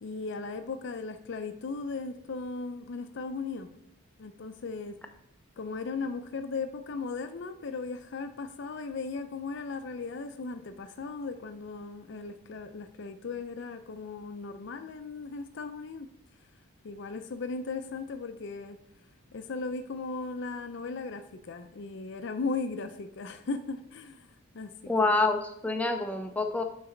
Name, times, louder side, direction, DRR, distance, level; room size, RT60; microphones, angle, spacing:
voice 1, 0.0-3.7 4.2-5.0 5.6-16.1 16.8-18.8 19.3-24.3 24.5-24.9, left 4 dB, 55° left, 9 dB, 0.4 m, -37 dB
voice 2, 24.9-26.6, left 3 dB, 5° left, 5 dB, 0.5 m, -27 dB
9.2 x 4.0 x 3.8 m, 0.80 s
head